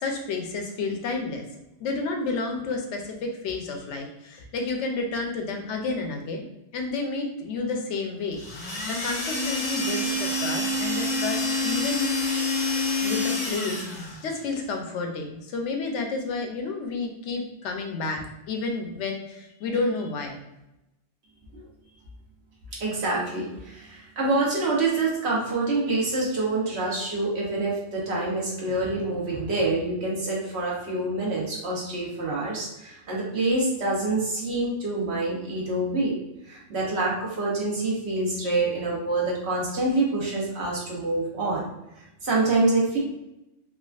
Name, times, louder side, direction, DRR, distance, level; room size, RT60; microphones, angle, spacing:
voice 1, 0.0-1.5 1.8-6.5 6.7-8.4 8.9-12.1 13.0-18.2 18.5-20.4, left 3 dB, 80° left, 3 dB, 0.9 m, -30 dB
sound 1, 8.4-14.2, left 2 dB, 50° left, 0.5 m, -27 dB
voice 2, 22.8-36.2 36.4-41.6 42.2-43.0, right 2 dB, 65° right, -4 dB, 1.1 m, -26 dB
3.4 x 2.2 x 2.3 m, 0.91 s
omnidirectional pair, 1.2 m